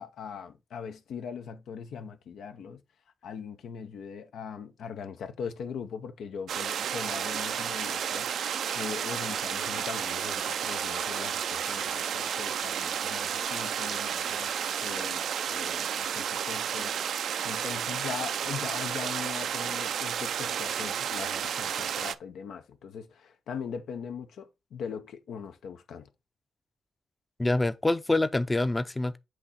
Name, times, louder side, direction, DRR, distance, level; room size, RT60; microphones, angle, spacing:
voice 1, 0.0-2.8 3.2-8.3 8.7-26.1, left 6 dB, 80° left, 0.6 m, -40 dB
sound 1, 6.5-22.1, right 8 dB, 80° right, 0.4 m, -32 dB
sound 2, 7.0-15.8, left 3 dB, 40° left, 1.3 m, -49 dB
voice 2, 27.4-29.2, left 2 dB, 20° left, 0.6 m, -26 dB
7.9 x 2.9 x 4.1 m
cardioid pair, 65°, 0 cm